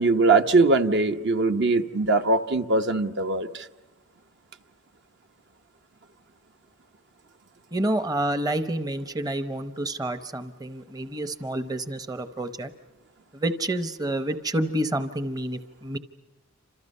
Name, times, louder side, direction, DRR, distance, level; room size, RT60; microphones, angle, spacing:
voice 1, 0.0-3.6, right 3 dB, 55° right, 6 dB, 1.0 m, -21 dB
voice 2, 7.7-12.7 13.3-16.0, right 1 dB, 20° right, 9 dB, 0.8 m, -29 dB
29.5 x 26.5 x 5.5 m, 1.2 s
head